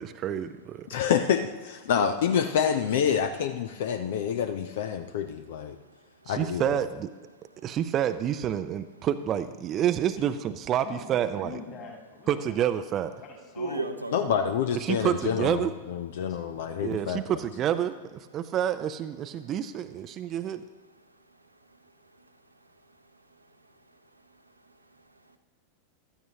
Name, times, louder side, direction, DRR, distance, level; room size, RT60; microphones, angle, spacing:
voice 1, 0.0-0.9 6.3-7.1 7.6-11.6 12.3-13.1 14.7-15.7 16.8-20.6, right 10 dB, 30° right, 10 dB, 0.5 m, -28 dB
voice 2, 0.9-5.8 6.3-6.8 14.1-17.2, left 8 dB, 55° left, 9 dB, 0.6 m, -27 dB
voice 3, 5.7-6.3 7.5-7.6 13.6-14.5 16.2-17.0 21.0-25.4, right 2 dB, 85° right, 6 dB, 0.9 m, -41 dB
voice 4, 10.7-12.8 13.1-13.9 16.3-16.7, left 4 dB, 35° left, 0 dB, 3.8 m, -44 dB
15.5 x 13.0 x 2.9 m, 1.3 s
figure-of-eight pair, 90°, 0 cm